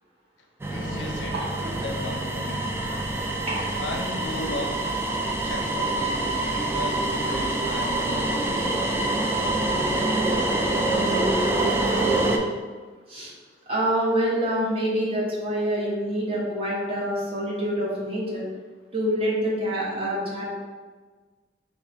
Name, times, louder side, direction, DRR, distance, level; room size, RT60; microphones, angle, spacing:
sound 1, 0.6-12.4, right 2 dB, 15° right, 0.3 m, -25 dB
voice 1, 0.7-2.7 3.8-4.9 5.4-8.4, left 1 dB, 75° left, 2 dB, 0.6 m, -36 dB
voice 2, 1.3-1.7 3.5-3.7 13.1-13.3 13.7-18.4 18.9-20.6, equal, 30° right, -5 dB, 1.0 m, -26 dB
3.5 x 2.4 x 4.1 m, 1.4 s
head